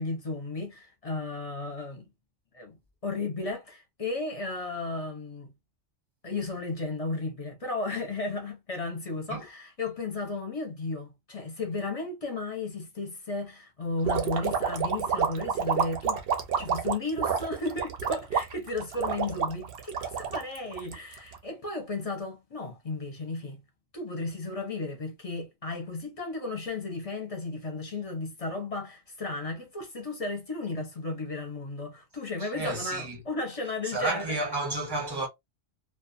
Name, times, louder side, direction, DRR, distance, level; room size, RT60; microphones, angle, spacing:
voice 1, 0.0-2.1 2.5-2.8 3.0-5.5 6.2-16.2 16.6-23.6 23.9-34.3, left 3 dB, 40° left, 0.6 m, -34 dB
sound 1, 14.0-21.4, right 6 dB, 60° right, 0.7 m, -29 dB
voice 2, 32.4-33.2 33.8-35.3, right 2 dB, 20° right, 0.8 m, -31 dB
2.4 x 2.1 x 2.5 m
omnidirectional pair, 1.3 m